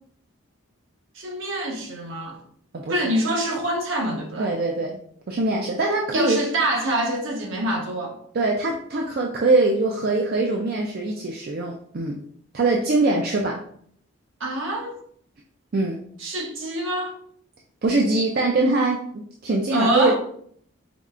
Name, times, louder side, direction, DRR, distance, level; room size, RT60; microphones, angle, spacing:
voice 1, 1.1-2.4 2.9-4.5 6.1-8.2 14.4-15.0 16.2-17.2 19.7-20.2, right 1 dB, 65° right, 0.9 m, -25 dB
voice 2, 2.7-3.1 4.4-5.0 5.3-6.4 8.3-12.2 12.5-13.6 15.7-16.0 17.8-20.2, right 2 dB, 45° right, 0.4 m, -22 dB
5.2 x 3.1 x 2.4 m
head